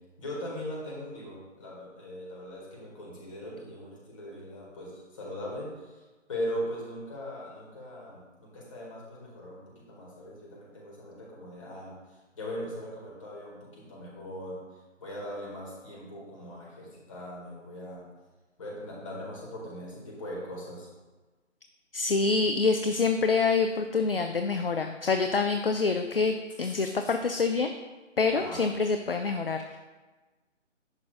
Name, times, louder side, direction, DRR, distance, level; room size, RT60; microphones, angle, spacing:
voice 1, 0.2-6.0 6.3-11.9 12.4-14.6 15.0-18.0 18.6-20.9 26.6-27.1 28.3-28.6, equal, 25° left, -5 dB, 1.9 m, -39 dB
voice 2, 21.9-27.7 28.2-29.8, left 4 dB, 50° left, 6 dB, 0.4 m, -26 dB
10.5 x 6.3 x 2.4 m, 1.2 s
figure-of-eight pair, 150°, 38 cm